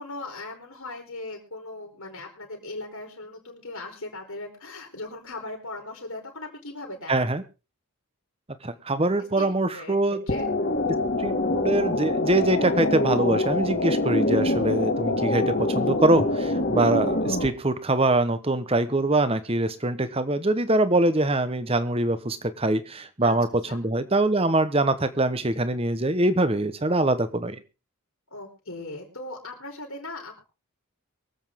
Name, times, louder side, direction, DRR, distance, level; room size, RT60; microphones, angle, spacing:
voice 1, 0.0-7.1 9.4-10.0 10.3-10.5 23.2-23.4 23.7-23.8 28.3-30.4, left 2 dB, 75° left, 2 dB, 4.1 m, -38 dB
voice 2, 7.1-7.4 8.6-10.2 11.2-27.6, right 2 dB, 25° right, 12 dB, 1.0 m, -23 dB
sound 1, 10.3-17.5, left 2 dB, 45° left, 2.0 m, -25 dB
24.0 x 8.0 x 3.7 m, 0.31 s
head